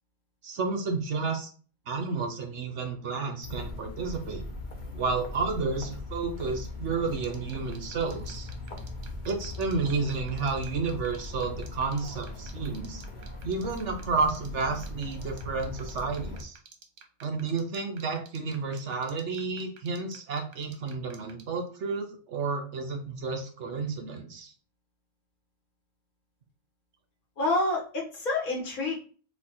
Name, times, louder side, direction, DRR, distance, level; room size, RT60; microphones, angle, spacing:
voice 1, 0.4-1.5 1.9-4.4 4.9-8.5 9.2-13.0 13.4-16.6 17.2-24.5, right 4 dB, 60° right, 3 dB, 1.0 m, -31 dB
sound 1, 3.4-16.4, left 2 dB, 40° left, 0.9 m, -40 dB
sound 2, 7.2-21.4, right 7 dB, 85° right, 1.4 m, -49 dB
voice 2, 27.4-29.0, left 2 dB, 80° left, -1 dB, 1.9 m, -28 dB
4.7 x 2.5 x 4.3 m, 0.40 s
omnidirectional pair, 1.5 m